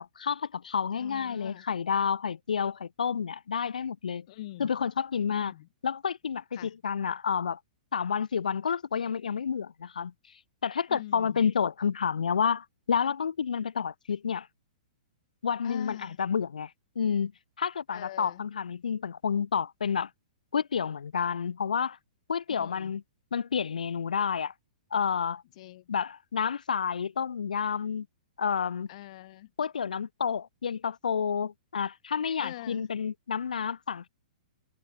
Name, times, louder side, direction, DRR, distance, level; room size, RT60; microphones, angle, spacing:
voice 1, 0.0-4.3 4.6-5.5 5.8-7.6 7.9-10.1 10.6-14.5 15.4-17.3 17.6-20.1 20.5-22.0 22.3-23.0 23.3-24.5 24.9-25.4 25.9-28.1 28.4-28.9 29.6-34.1, left 7 dB, 75° left, 1.3 m, -30 dB
voice 2, 1.0-1.6 4.3-4.7 5.3-5.7 6.5-6.7 10.9-11.4 15.6-16.2 17.9-18.4 22.5-22.9 25.6-26.0 28.9-29.5 32.4-32.9, left 15 dB, 50° left, 7.6 m, -44 dB
figure-of-eight pair, 115°, 4 cm